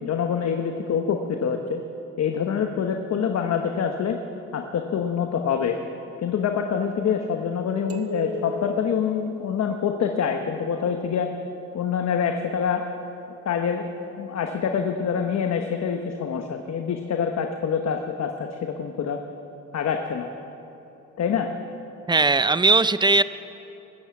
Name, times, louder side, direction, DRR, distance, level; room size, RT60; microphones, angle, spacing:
voice 1, 0.0-1.8 2.2-4.2 4.5-5.8 6.2-11.3 11.7-12.8 13.4-19.2 19.7-20.3 21.2-21.5, left 7 dB, 60° left, 5 dB, 1.1 m, -26 dB
sound 1, 7.9-10.3, left 2 dB, 50° right, 1.3 m, -36 dB
voice 2, 22.1-23.2, right 3 dB, 15° right, 14 dB, 0.5 m, -18 dB
20.0 x 9.2 x 7.6 m, 3.0 s
cardioid pair, 90°, 30 cm